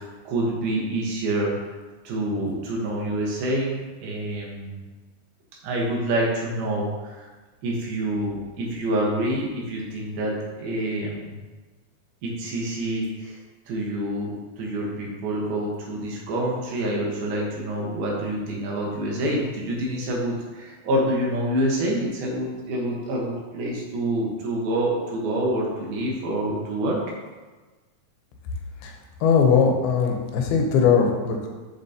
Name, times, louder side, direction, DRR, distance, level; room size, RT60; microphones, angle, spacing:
voice 1, 0.0-1.7 2.0-4.8 5.6-7.3 7.6-11.3 12.2-13.4 13.7-27.0, right 1 dB, 80° right, -2 dB, 3.1 m, -27 dB
voice 2, 29.2-31.5, left 6 dB, 90° left, 2 dB, 2.8 m, -20 dB
7.1 x 6.7 x 2.8 m, 1.3 s
omnidirectional pair, 4.3 m